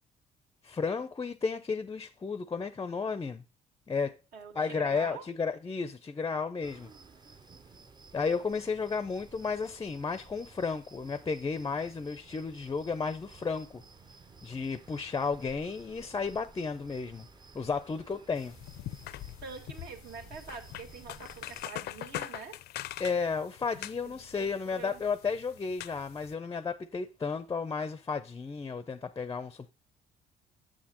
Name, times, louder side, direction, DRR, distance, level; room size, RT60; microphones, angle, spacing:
voice 1, 0.6-3.4 3.9-4.2 4.5-6.9 8.1-13.8 14.4-17.3 17.5-18.5 23.0-29.7, left 5 dB, 20° left, 0.4 m, -33 dB
voice 2, 4.3-5.3 19.4-22.6 24.0-25.0, right 5 dB, 75° right, 2.1 m, -45 dB
sound 1, 6.6-21.7, right 4 dB, 25° right, 0.6 m, -54 dB
sound 2, 18.4-26.3, left 13 dB, 75° left, 0.5 m, -43 dB
8.7 x 7.5 x 2.9 m
cardioid pair, 135°, 17 cm